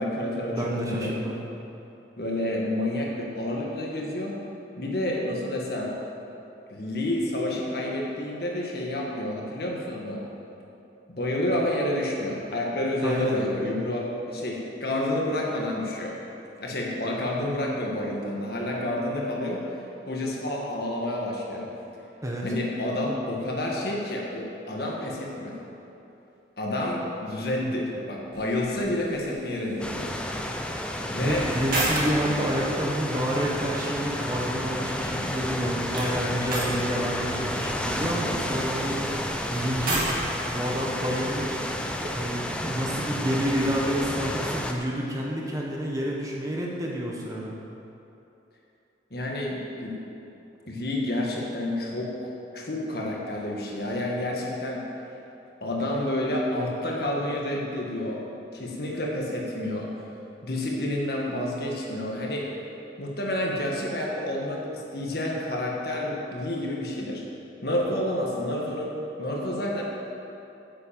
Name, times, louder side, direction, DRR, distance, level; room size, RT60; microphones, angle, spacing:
voice 1, 0.0-1.1 2.2-4.4 4.8-5.9 6.7-10.2 11.1-16.2 16.6-19.6 20.1-21.7 22.4-25.6 26.6-30.1 31.1-31.5 49.1-50.0 50.7-54.8 55.6-58.2 58.5-59.9 60.4-62.5 63.0-67.2 67.6-68.9 69.2-69.8, left 1 dB, 55° left, -2 dB, 1.8 m, -29 dB
voice 2, 0.5-1.4 13.0-13.4 22.2-22.5 31.2-39.1 39.5-40.1 40.5-41.6 42.1-47.6, equal, 20° right, -3 dB, 1.2 m, -29 dB
sound 1, 28.3-43.8, right 1 dB, 50° right, 2.6 m, -36 dB
sound 2, 29.8-44.7, left 1 dB, 5° left, 0.6 m, -31 dB
9.7 x 7.7 x 7.4 m, 2.9 s
head